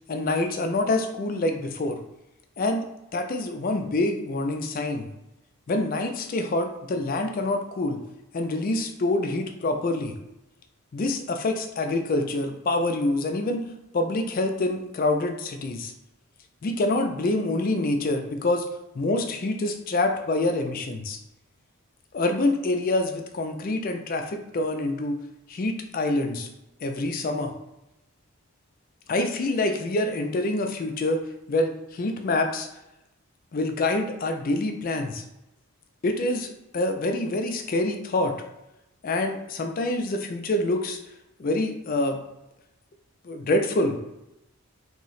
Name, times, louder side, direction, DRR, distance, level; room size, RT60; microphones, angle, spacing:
voice 1, 0.1-2.0 2.6-2.8 3.1-5.1 5.7-8.0 8.3-10.2 10.9-13.6 13.9-15.9 16.6-18.6 18.9-21.2 22.1-25.2 25.5-26.5 26.8-27.5 29.1-31.2 31.5-32.7 33.5-35.2 36.0-38.4 39.0-41.0 41.4-42.2 43.2-44.0, left 2 dB, 40° left, 4 dB, 0.3 m, -26 dB
2.9 x 2.0 x 3.9 m, 0.89 s
head